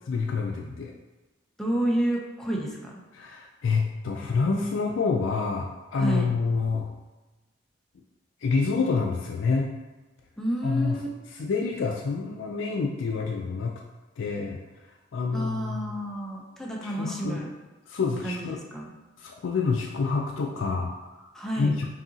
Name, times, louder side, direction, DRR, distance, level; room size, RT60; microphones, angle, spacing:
voice 1, 0.1-0.9 3.1-6.9 8.4-9.7 10.6-11.0 11.3-13.8 14.2-14.6 15.1-16.0 16.8-17.4 17.9-18.6 19.2-21.2 21.6-21.9, left 4 dB, 75° left, 0 dB, 0.4 m, -27 dB
voice 2, 1.6-2.9 5.9-6.3 10.4-11.1 15.3-17.5 18.2-18.4 18.7-18.9 21.3-21.7, right 1 dB, ahead, -3 dB, 0.5 m, -29 dB
5.3 x 2.7 x 2.7 m, 1.2 s
head